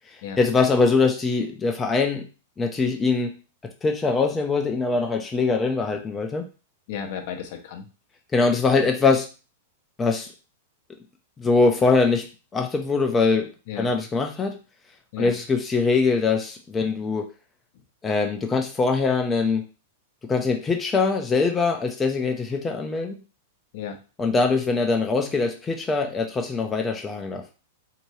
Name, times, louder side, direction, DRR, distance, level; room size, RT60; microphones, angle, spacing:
voice 1, 0.4-2.2 2.6-3.3 3.8-6.5 8.3-9.3 10.0-10.3 11.4-12.2 12.5-13.5 13.8-14.5 15.2-17.3 18.0-19.6 20.3-23.2 24.2-27.4, left 4 dB, 20° left, 3 dB, 0.5 m, -22 dB
voice 2, 6.9-7.8 13.7-13.9 15.1-15.3 23.7-24.0, left 7 dB, 55° left, 5 dB, 0.6 m, -33 dB
2.8 x 2.6 x 3.1 m, 0.33 s
hypercardioid pair, 105°, 0 cm